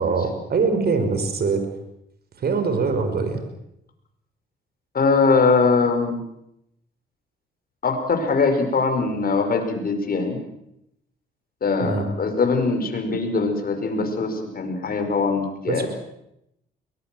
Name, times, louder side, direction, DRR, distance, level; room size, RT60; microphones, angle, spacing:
voice 1, 0.0-1.7 2.4-3.4 11.8-12.1 15.6-15.9, right 4 dB, 50° right, 8 dB, 5.3 m, -23 dB
voice 2, 4.9-6.2 7.8-10.4 11.6-15.9, left 4 dB, 50° left, 5 dB, 5.4 m, -22 dB
23.0 x 20.0 x 7.8 m, 0.79 s
cardioid pair, 90°, 20 cm